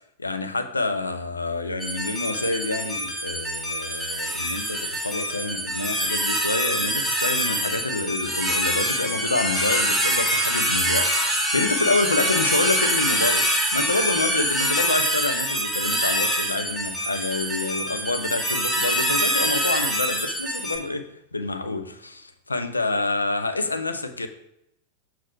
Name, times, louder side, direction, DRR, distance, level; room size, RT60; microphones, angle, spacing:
voice 1, 0.2-24.3, left 3 dB, 80° left, 0.6 m, -27 dB
sound 1, 1.8-20.8, right 1 dB, 5° right, 1.7 m, -25 dB
7.3 x 3.0 x 4.7 m
figure-of-eight pair, 90°, 0 cm